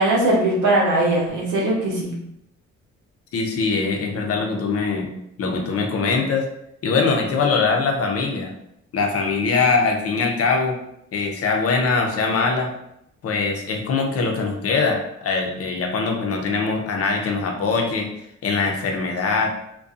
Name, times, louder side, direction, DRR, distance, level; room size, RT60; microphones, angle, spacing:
voice 1, 0.0-2.1, right 1 dB, 80° right, -3 dB, 0.9 m, -20 dB
voice 2, 3.3-5.1 5.4-6.5 6.8-8.5 8.9-10.8 11.1-12.7 13.2-18.1 18.4-19.5, left 4 dB, 50° left, 2 dB, 0.6 m, -22 dB
2.5 x 2.2 x 2.4 m, 0.77 s
cardioid pair, 90°, 30 cm